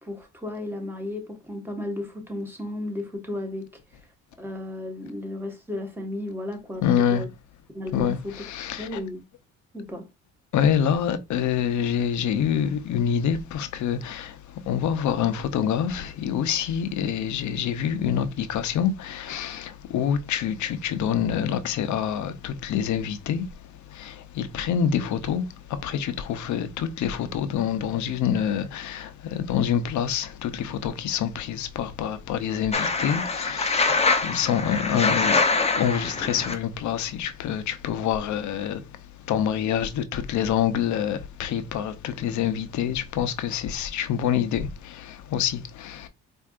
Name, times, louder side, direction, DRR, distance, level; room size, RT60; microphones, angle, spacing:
voice 1, 0.0-3.7 4.4-7.3 7.7-8.3 8.8-9.2 9.7-10.1, left 1 dB, 5° right, 1.2 m, -34 dB
voice 2, 6.8-7.2 7.9-9.0 10.5-23.5 23.9-35.4 35.7-38.9 39.3-46.1, left 8 dB, 70° left, 0.7 m, -26 dB
sound 1, 32.7-36.5, left 4 dB, 20° left, 0.7 m, -24 dB
4.5 x 2.6 x 2.4 m
cardioid pair, 90°, 30 cm